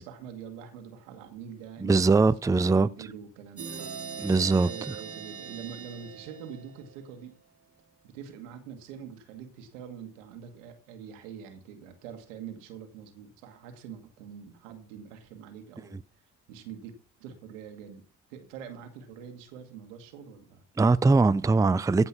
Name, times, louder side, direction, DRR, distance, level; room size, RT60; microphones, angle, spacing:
voice 1, 0.0-4.0 4.6-7.3 8.0-16.0 16.5-16.9 17.2-18.0 18.3-20.6, right 7 dB, 85° right, 1.6 m, -44 dB
voice 2, 1.8-2.9 4.2-4.9 20.8-22.1, right 3 dB, 10° right, 0.5 m, -22 dB
sound 1, 3.6-7.1, right 6 dB, 40° right, 1.7 m, -41 dB
15.0 x 5.5 x 5.8 m
hypercardioid pair, 45°, 37 cm